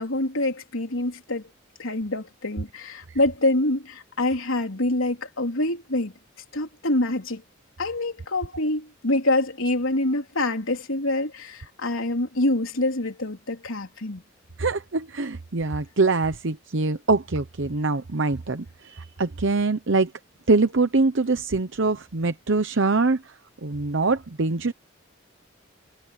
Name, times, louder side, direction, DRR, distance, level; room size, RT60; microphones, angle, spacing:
voice 1, 0.0-1.4 1.8-6.1 6.5-7.4 7.8-14.2, left 2 dB, 85° left, 3.7 m, -26 dB
voice 2, 14.6-20.1 20.5-23.4 23.6-24.7, right 3 dB, 65° right, 0.9 m, -24 dB
head